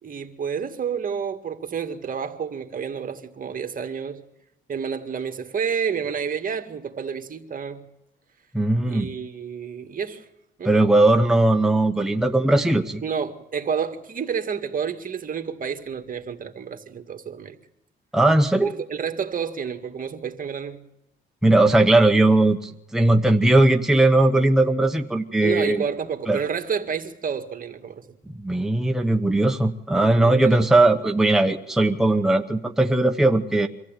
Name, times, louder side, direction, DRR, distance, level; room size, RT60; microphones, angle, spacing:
voice 1, 0.0-4.2 4.7-7.9 8.8-10.2 10.6-10.8 13.0-17.6 18.6-20.8 25.4-28.0 29.9-30.7, right 6 dB, 45° right, 1.9 m, -30 dB
voice 2, 8.5-9.1 10.6-13.0 18.1-18.7 21.4-25.8 26.3-26.4 28.4-33.7, right 2 dB, ahead, 1.0 m, -19 dB
24.5 x 14.5 x 9.0 m
cardioid pair, 90°, 20 cm